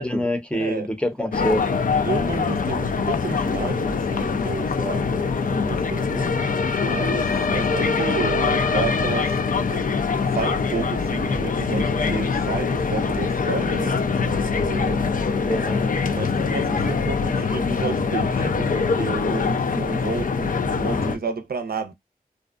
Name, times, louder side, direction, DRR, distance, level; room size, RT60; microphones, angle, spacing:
voice 1, 0.0-1.7 15.5-15.8 20.8-21.2, equal, 5° left, 0.6 m, -26 dB
voice 2, 0.5-0.9 2.0-6.4 6.8-9.4 9.7-9.9 10.3-14.2 14.5-15.0 15.4-15.5 16.1-21.9, right 5 dB, 80° right, 0.5 m, -31 dB
sound 1, 1.3-21.2, left 5 dB, 60° left, 0.4 m, -23 dB
2.6 x 2.1 x 2.4 m
wide cardioid pair, 60°, 15 cm